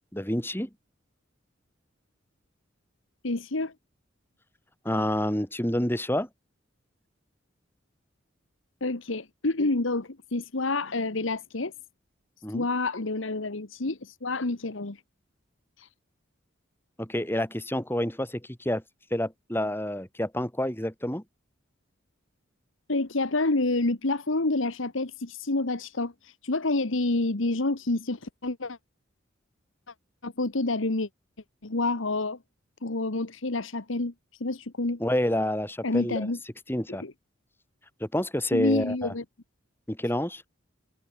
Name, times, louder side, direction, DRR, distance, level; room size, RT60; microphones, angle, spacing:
voice 1, 0.1-0.7 4.8-6.3 12.4-12.6 17.0-18.8 19.1-21.2 35.0-36.3 36.7-37.0 38.0-39.1 39.9-40.4, left 1 dB, 10° left, 3.5 m, -28 dB
voice 2, 3.2-3.7 8.8-11.7 12.5-15.0 15.8-15.9 22.9-28.8 30.2-31.1 31.6-32.4 32.8-35.0 35.8-36.4 37.0-37.1 38.5-39.2, left 2 dB, 75° left, 1.4 m, -28 dB
head